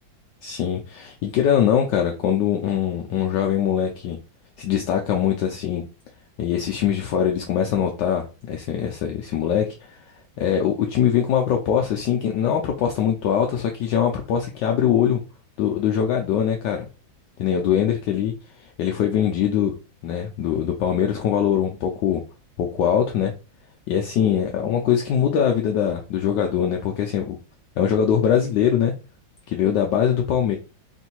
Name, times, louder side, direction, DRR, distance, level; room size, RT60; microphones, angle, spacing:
voice 1, 0.4-4.2 4.6-5.8 6.4-10.0 10.4-15.2 15.6-16.9 17.4-19.7 20.0-22.2 22.6-23.3 23.9-27.4 27.8-28.9 29.5-30.6, left 9 dB, 70° left, 2 dB, 1.1 m, -22 dB
3.7 x 2.6 x 4.3 m, 0.32 s
omnidirectional pair, 2.2 m